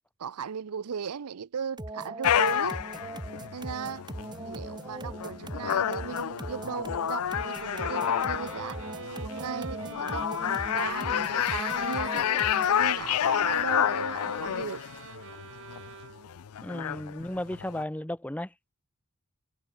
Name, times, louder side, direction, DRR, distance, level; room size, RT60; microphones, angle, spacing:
voice 1, 0.2-2.8 3.5-4.0 4.4-12.3 12.7-14.9, right 6 dB, 90° right, 0.6 m, -37 dB
sound 1, 1.8-12.9, right 1 dB, 20° right, 1.5 m, -40 dB
sound 2, 2.2-17.8, left 10 dB, 80° left, 0.4 m, -30 dB
sound 3, 7.3-16.5, right 4 dB, 60° right, 1.3 m, -43 dB
voice 2, 16.6-18.5, left 1 dB, 5° left, 0.6 m, -34 dB
head